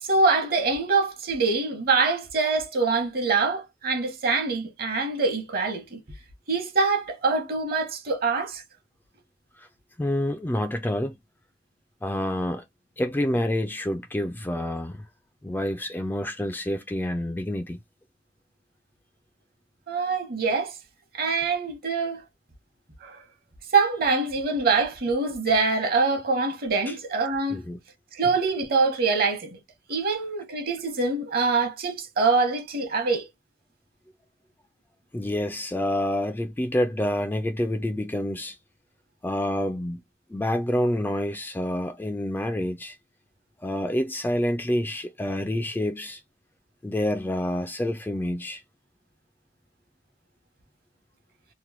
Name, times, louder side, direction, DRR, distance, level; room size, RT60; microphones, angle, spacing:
voice 1, 0.0-6.0 6.5-8.6 19.9-20.7 21.1-22.2 23.0-23.2 23.7-27.6 28.1-29.6 29.9-33.3, right 4 dB, 55° right, 0.9 m, -24 dB
voice 2, 10.0-11.2 12.0-12.6 13.0-15.0 15.4-17.8 26.9-27.0 27.5-27.8 35.1-38.6 39.2-40.0 40.3-42.9 43.6-46.2 46.8-48.6, left 1 dB, 10° left, 0.3 m, -28 dB
3.0 x 2.1 x 3.0 m
head